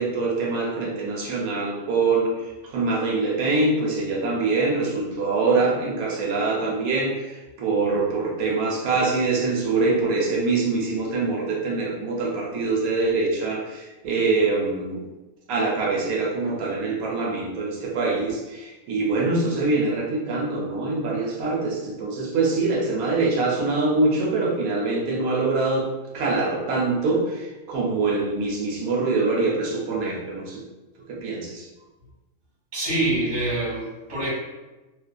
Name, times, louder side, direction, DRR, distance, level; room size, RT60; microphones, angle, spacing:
voice 1, 0.0-15.0 15.5-25.9 26.1-30.6 31.1-31.7, right 3 dB, 90° right, -3 dB, 1.1 m, -24 dB
voice 2, 32.7-34.3, right 2 dB, 40° right, -8 dB, 1.4 m, -25 dB
2.6 x 2.4 x 2.2 m, 1.1 s
omnidirectional pair, 1.4 m